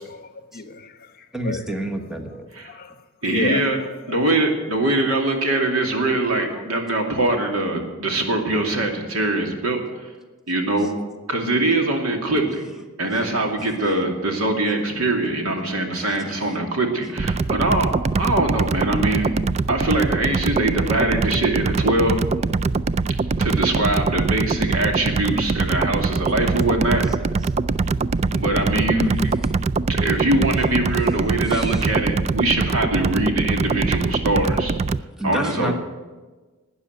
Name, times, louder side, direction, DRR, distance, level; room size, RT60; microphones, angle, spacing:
voice 1, 0.0-1.6 2.6-2.9 3.2-3.6, left 2 dB, 45° left, 1.0 m, -31 dB
voice 2, 1.3-2.5 6.5-6.6 16.0-16.1 16.5-16.6 31.5-31.8 35.2-35.7, right 1 dB, ahead, 1.3 m, -29 dB
voice 3, 3.2-3.8 4.1-10.1 10.5-10.9 11.3-12.6 13.0-17.9 18.2-19.4 19.7-22.2 23.4-27.1 28.3-29.3 29.9-34.7 35.2-35.7, right 2 dB, 85° right, 2.6 m, -22 dB
sound 1, 17.2-35.0, right 4 dB, 30° right, 0.3 m, -23 dB
12.5 x 9.6 x 9.2 m
head